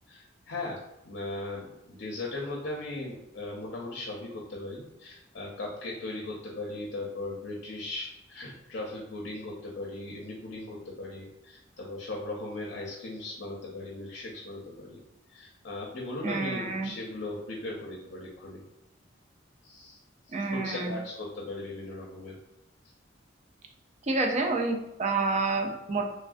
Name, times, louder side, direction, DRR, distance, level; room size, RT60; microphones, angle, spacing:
voice 1, 0.1-15.0 15.3-18.6 19.6-20.0 20.3-22.4, left 2 dB, 55° left, -2 dB, 0.5 m, -38 dB
voice 2, 16.2-16.9 20.3-20.9 24.1-26.0, right 3 dB, 35° right, 3 dB, 0.4 m, -28 dB
3.2 x 2.3 x 2.5 m, 0.90 s
head